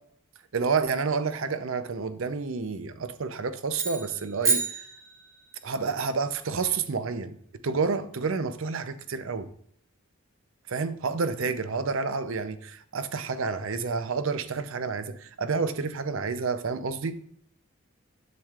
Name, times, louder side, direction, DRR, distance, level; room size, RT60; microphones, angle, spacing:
voice 1, 0.5-4.8 5.6-7.4 7.6-9.5 10.7-17.2, right 4 dB, 70° right, 0.6 m, -29 dB
sound 1, 3.7-5.7, right 3 dB, 15° right, 1.1 m, -29 dB
7.6 x 7.3 x 2.4 m
head